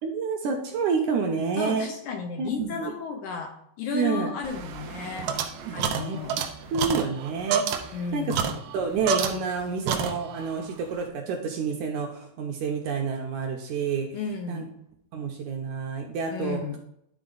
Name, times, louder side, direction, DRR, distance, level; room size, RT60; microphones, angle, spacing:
voice 1, 0.0-1.9 2.4-2.9 3.9-4.3 5.7-6.2 6.7-7.8 8.1-8.4 8.7-14.1 14.5-14.6 15.1-16.6, right 5 dB, 75° right, 2 dB, 2.0 m, -29 dB
voice 2, 1.6-5.3 5.7-6.3 7.9-8.5 14.1-14.7 16.3-16.8, left 5 dB, 75° left, 3 dB, 1.9 m, -33 dB
sound 1, 4.4-9.6 9.9-10.5, right 7 dB, 90° right, 1.5 m, -29 dB
11.0 x 4.3 x 3.9 m, 0.73 s
omnidirectional pair, 4.1 m